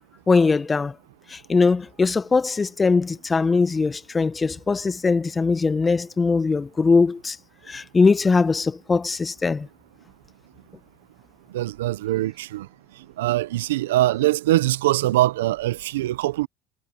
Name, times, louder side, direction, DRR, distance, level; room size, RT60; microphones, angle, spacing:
voice 1, 0.3-0.9 1.3-7.4 7.7-9.7, left 4 dB, 25° left, 1.0 m, -21 dB
voice 2, 11.5-12.7 13.2-16.5, right 15 dB, 85° right, 0.8 m, -22 dB
hypercardioid pair, 70°, 0 cm